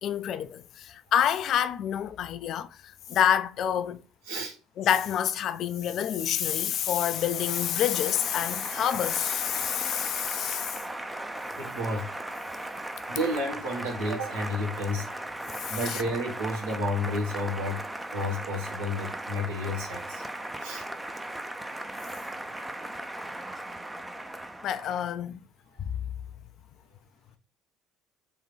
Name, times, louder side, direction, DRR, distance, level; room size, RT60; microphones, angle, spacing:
voice 1, 0.0-4.0 4.8-10.8 15.6-16.0 24.6-25.4 25.8-25.9, left 10 dB, 50° left, 0.3 m, -28 dB
Applause, 6.2-25.1, right 1 dB, 10° right, 0.5 m, -38 dB
voice 2, 11.6-12.1 13.1-15.1 15.7-17.8 18.1-20.2 20.6-20.8, left 1 dB, 70° right, 1.3 m, -31 dB
3.6 x 3.5 x 3.2 m
figure-of-eight pair, 55°, 0 cm